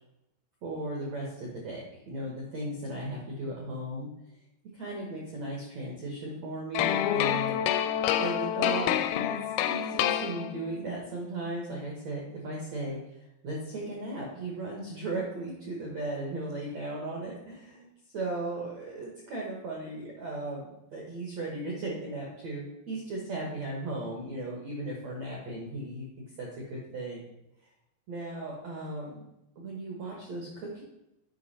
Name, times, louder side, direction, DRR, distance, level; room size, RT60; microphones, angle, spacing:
voice 1, 0.6-4.1 4.7-7.6 8.2-9.4 9.7-17.9 18.1-27.2 28.1-29.2 29.5-30.8, right 2 dB, 80° right, -2 dB, 1.5 m, -36 dB
sound 1, 6.8-10.9, left 10 dB, 85° left, 2.9 m, -28 dB
8.5 x 5.4 x 4.2 m, 0.87 s
omnidirectional pair, 5.2 m